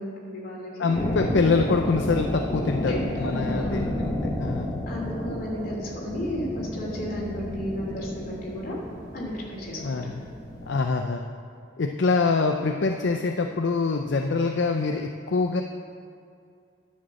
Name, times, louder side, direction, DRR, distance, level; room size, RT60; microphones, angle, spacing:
voice 1, 0.0-0.9 2.8-4.3 4.9-8.8 9.1-10.0, equal, 45° left, -4 dB, 2.9 m, -34 dB
voice 2, 0.8-4.8 9.8-10.2 10.7-11.3 11.8-15.6, left 4 dB, 65° left, 4 dB, 0.5 m, -25 dB
sound 1, 0.9-10.8, left 1 dB, 20° left, 1.3 m, -31 dB
10.5 x 6.5 x 7.5 m, 2.4 s
head